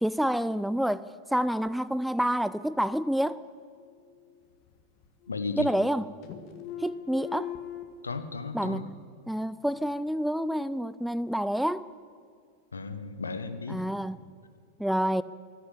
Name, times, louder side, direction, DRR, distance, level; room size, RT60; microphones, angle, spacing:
voice 1, 0.0-1.1 1.3-3.4 5.6-6.0 6.8-7.5 8.5-11.9 13.7-14.2 14.8-15.2, equal, ahead, 0.3 m, -28 dB
sound 1, 3.8-4.7 5.0-6.0 6.2-7.8, left 12 dB, 40° left, 1.5 m, -41 dB
voice 2, 5.3-5.7 8.0-8.9 12.7-13.8, left 3 dB, 75° left, 1.0 m, -35 dB
13.0 x 11.0 x 9.9 m
figure-of-eight pair, 90°, 0 cm